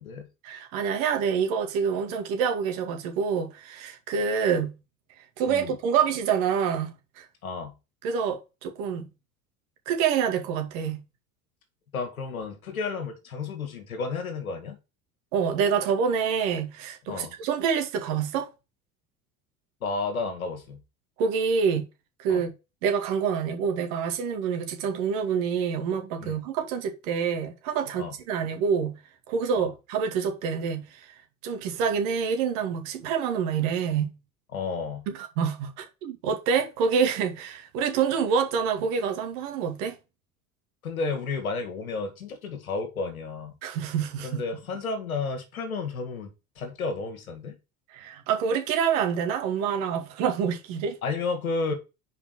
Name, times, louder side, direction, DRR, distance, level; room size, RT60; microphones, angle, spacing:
voice 1, 0.4-4.7 5.4-7.3 8.0-9.1 9.9-11.0 15.3-18.5 21.2-21.8 22.2-22.5 22.8-28.9 29.3-31.1 31.4-34.1 35.1-39.9 43.6-44.4 47.9-51.0, right 6 dB, 65° right, 2.1 m, -27 dB
voice 2, 7.4-7.7 11.9-14.8 17.1-17.3 19.8-20.8 22.3-22.4 26.2-26.4 28.0-28.2 29.6-29.7 34.5-35.1 40.8-43.6 44.2-47.6 51.0-51.7, left 4 dB, 90° left, 1.8 m, -32 dB
5.0 x 5.0 x 6.2 m
hypercardioid pair, 75°, 42 cm